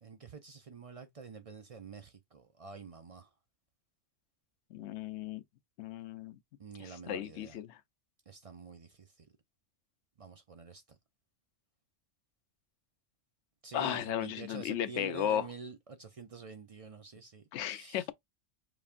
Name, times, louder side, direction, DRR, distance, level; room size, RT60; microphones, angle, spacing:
voice 1, 0.0-3.3 6.6-7.6 8.3-9.3 10.2-11.0 13.6-18.1, right 4 dB, 50° right, 0.4 m, -48 dB
voice 2, 4.7-5.4 5.8-6.4 6.8-7.8 13.7-15.5 17.5-18.1, left 10 dB, 75° left, 0.9 m, -35 dB
5.1 x 3.3 x 2.4 m
omnidirectional pair, 1.2 m